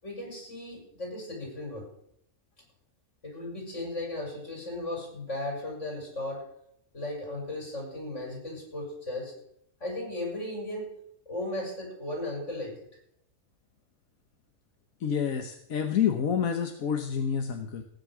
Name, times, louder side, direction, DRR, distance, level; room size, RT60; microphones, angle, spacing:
voice 1, 0.0-1.9 3.2-6.4 6.9-9.3 9.8-10.9 11.3-12.7, left 1 dB, 60° left, -1 dB, 6.6 m, -36 dB
voice 2, 15.0-17.8, left 7 dB, 90° left, 5 dB, 1.5 m, -28 dB
17.0 x 9.8 x 6.2 m, 0.75 s
omnidirectional pair, 1.4 m